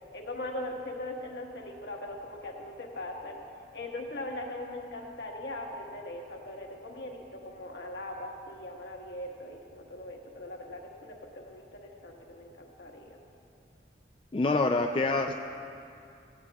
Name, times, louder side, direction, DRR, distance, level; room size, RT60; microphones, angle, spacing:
voice 1, 0.1-3.4 3.7-13.2, left 1 dB, 65° left, 0 dB, 1.5 m, -40 dB
voice 2, 14.3-15.3, left 3 dB, 30° left, 3 dB, 0.4 m, -26 dB
17.5 x 16.5 x 2.4 m, 2.6 s
head